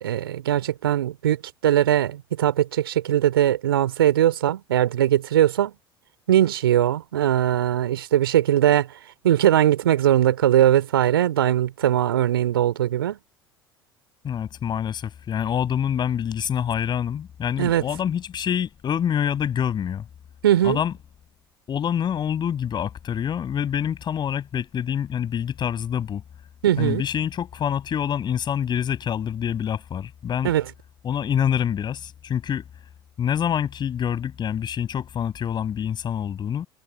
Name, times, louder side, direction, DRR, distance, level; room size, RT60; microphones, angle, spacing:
voice 1, 0.0-1.4 1.6-5.7 6.3-8.9 9.2-13.2 17.6-17.9 20.4-20.8 26.6-27.0 30.4-30.6, right 11 dB, 75° right, 3.4 m, -20 dB
voice 2, 14.2-20.0 20.6-20.9 21.7-26.2 26.8-30.5 31.0-32.6 33.2-36.7, left 8 dB, 35° left, 6.9 m, -26 dB
figure-of-eight pair, 70°, 12 cm